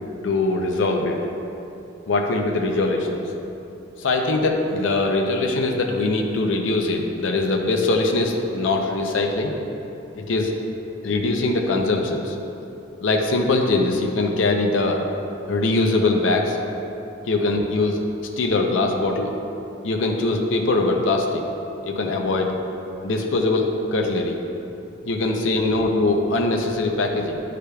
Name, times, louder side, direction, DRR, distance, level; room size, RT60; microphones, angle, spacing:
voice 1, 0.2-1.3 2.1-3.3 4.0-9.5 10.1-10.5 11.0-12.4 13.0-15.0 15.5-16.6 17.2-18.0 18.4-19.4 19.8-21.4 21.8-22.5 23.0-24.4 25.0-27.4, left 2 dB, 75° left, 2 dB, 0.5 m, -22 dB
9.8 x 4.9 x 2.3 m, 2.9 s
head